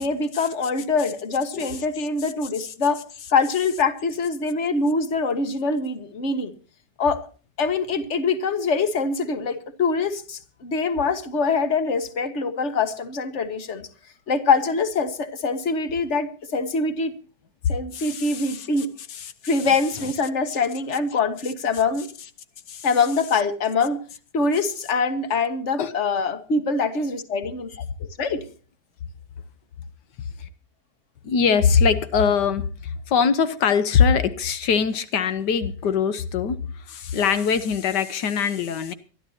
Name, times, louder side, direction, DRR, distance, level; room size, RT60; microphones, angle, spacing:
voice 1, 0.0-3.0 3.3-6.5 7.0-7.2 7.6-13.9 14.3-17.1 17.7-18.9 19.4-22.1 22.8-24.0 24.3-27.7 28.0-28.4, left 4 dB, 45° left, 10 dB, 1.8 m, -24 dB
voice 2, 17.9-18.7 19.1-19.3 22.7-22.9 25.8-25.9 31.2-38.9, left 6 dB, 90° left, 12 dB, 1.7 m, -22 dB
24.0 x 12.0 x 2.8 m, 0.39 s
omnidirectional pair, 1.8 m